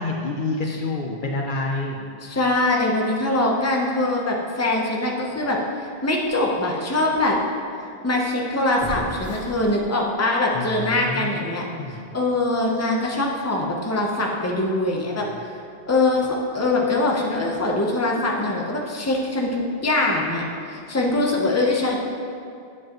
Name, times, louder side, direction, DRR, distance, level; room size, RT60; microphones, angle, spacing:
voice 1, 0.0-2.1 10.5-12.1, left 2 dB, 60° left, 0 dB, 0.7 m, -28 dB
voice 2, 2.2-7.4 8.0-15.3 15.9-22.0, left 2 dB, 15° left, -1 dB, 0.8 m, -23 dB
sound 1, 6.2-6.3 8.8-10.2 10.6-10.7, equal, 80° right, 2.4 m, -35 dB
9.6 x 7.8 x 3.0 m, 2.4 s
omnidirectional pair, 1.1 m